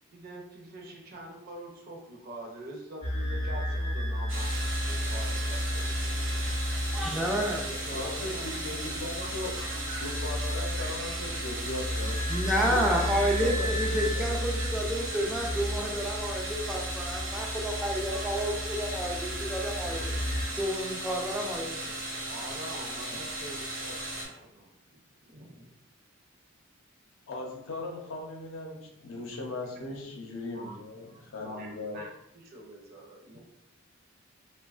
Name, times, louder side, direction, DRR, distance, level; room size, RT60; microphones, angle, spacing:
voice 1, 0.1-6.4 7.8-8.7 9.2-10.0 10.8-11.6 12.0-12.4 22.3-25.0 25.3-25.7 30.5-30.8 31.1-31.7 31.9-33.4, right 1 dB, 50° right, 0 dB, 0.6 m, -45 dB
sound 1, 3.0-20.5, equal, 35° left, 0.7 m, -33 dB
sound 2, 4.3-24.2, right 1 dB, 85° right, 0.8 m, -37 dB
voice 2, 6.9-7.8 12.3-20.1 20.6-21.8, equal, ahead, -2 dB, 0.3 m, -30 dB
voice 3, 7.9-9.5 10.0-14.3 27.3-32.0, left 2 dB, 75° left, 0 dB, 0.6 m, -38 dB
2.9 x 2.1 x 2.3 m, 0.80 s
head